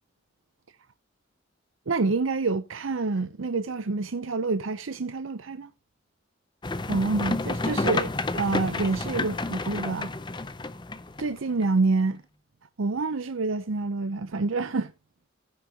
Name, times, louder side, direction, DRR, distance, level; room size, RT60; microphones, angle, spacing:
voice 1, 1.9-5.7 6.9-10.1 11.2-12.2 12.8-14.9, right 3 dB, 75° right, 0.6 m, -27 dB
sound 1, 6.6-11.6, left 2 dB, 20° left, 0.6 m, -30 dB
15.0 x 6.4 x 2.8 m
head